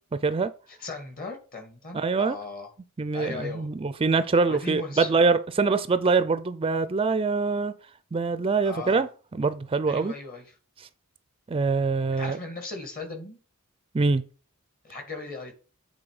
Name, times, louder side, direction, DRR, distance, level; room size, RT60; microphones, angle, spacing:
voice 1, 0.1-0.5 1.9-2.4 3.0-7.7 8.1-9.1 9.4-10.1 11.5-12.4 13.9-14.2, right 4 dB, 25° right, 0.4 m, -24 dB
voice 2, 0.7-2.7 3.1-3.7 4.4-5.1 8.6-9.0 9.9-10.5 12.2-13.4 14.8-15.5, left 3 dB, 40° left, 2.2 m, -37 dB
8.6 x 4.1 x 4.8 m
head